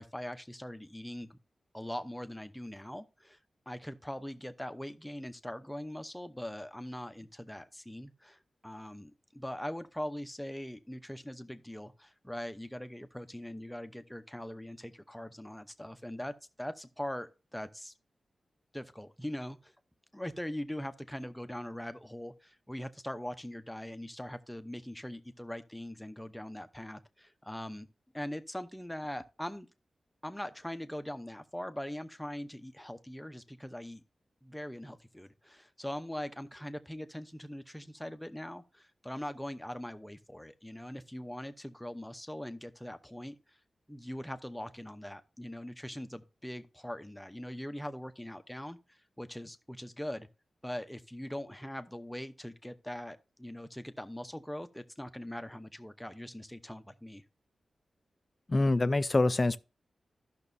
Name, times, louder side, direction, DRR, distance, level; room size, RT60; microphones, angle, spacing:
voice 1, 0.0-1.4 1.7-3.4 3.7-17.9 18.7-19.7 20.1-27.9 28.1-29.7 30.2-34.0 34.4-43.6 43.9-50.3 50.6-57.2, left 1 dB, 5° left, 0.7 m, -41 dB
voice 2, 58.5-59.6, left 2 dB, 30° left, 0.4 m, -25 dB
14.0 x 6.0 x 2.6 m
wide cardioid pair, 95°, 0 cm